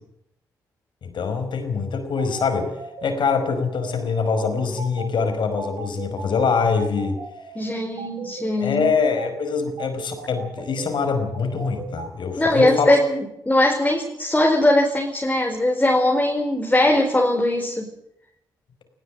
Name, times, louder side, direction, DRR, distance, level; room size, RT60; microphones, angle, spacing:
voice 1, 1.0-2.7 3.0-7.2 8.6-12.9, left 5 dB, 60° left, 7 dB, 5.3 m, -24 dB
sound 1, 2.2-12.1, right 5 dB, 65° right, 6.1 m, -36 dB
voice 2, 7.5-8.9 12.4-17.9, left 1 dB, 15° left, 1 dB, 4.4 m, -20 dB
19.0 x 17.0 x 9.0 m, 0.80 s
hypercardioid pair, 45°, 9 cm